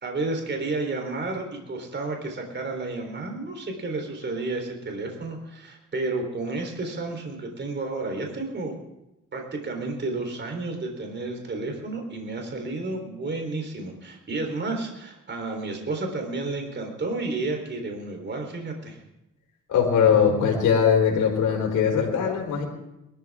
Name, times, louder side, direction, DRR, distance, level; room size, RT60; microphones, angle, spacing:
voice 1, 0.0-8.7 9.3-19.0, right 3 dB, 35° right, 3 dB, 3.9 m, -31 dB
voice 2, 19.7-22.6, left 7 dB, 80° left, 0 dB, 4.2 m, -21 dB
22.0 x 13.5 x 3.7 m, 0.91 s
cardioid pair, 90°, 30 cm